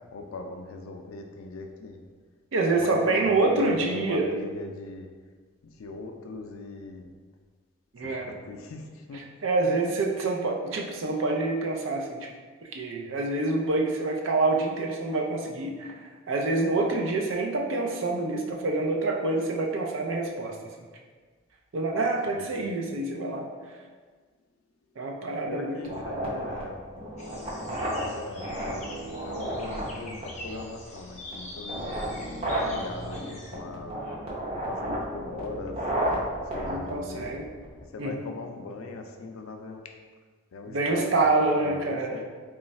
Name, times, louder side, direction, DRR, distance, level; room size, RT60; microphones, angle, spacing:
voice 1, 0.0-2.0 2.7-5.1 5.6-7.1 8.0-9.3 22.3-22.5 25.5-26.8 27.7-28.7 29.2-32.1 32.4-34.0 34.6-37.3 37.8-40.0 40.5-41.2 41.5-42.2, left 3 dB, 80° left, 4 dB, 0.4 m, -40 dB
voice 2, 2.5-4.4 7.9-8.3 9.4-12.3 12.7-16.0 16.3-20.6 21.7-23.5 25.0-25.7 36.7-37.4 38.0-38.2 40.7-42.1, right 2 dB, 70° right, 1 dB, 0.5 m, -26 dB
sound 1, 25.8-37.8, right 1 dB, 30° right, 0.7 m, -33 dB
sound 2, 27.2-33.5, left 1 dB, 35° left, 0.5 m, -45 dB
3.1 x 2.3 x 4.0 m, 1.5 s
head